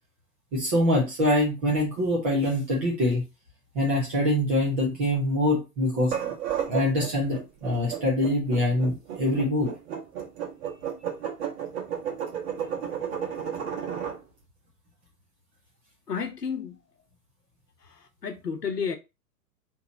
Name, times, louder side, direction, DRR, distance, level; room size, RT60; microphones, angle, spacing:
voice 1, 0.5-3.2 3.7-6.1 6.7-9.7, left 1 dB, 10° right, 0.4 m, -24 dB
sound 1, 6.0-14.2, right 8 dB, 45° right, 1.2 m, -32 dB
voice 2, 16.1-16.7 18.2-19.0, left 6 dB, 85° left, 0.8 m, -30 dB
2.9 x 2.9 x 3.7 m
figure-of-eight pair, 105°, 46 cm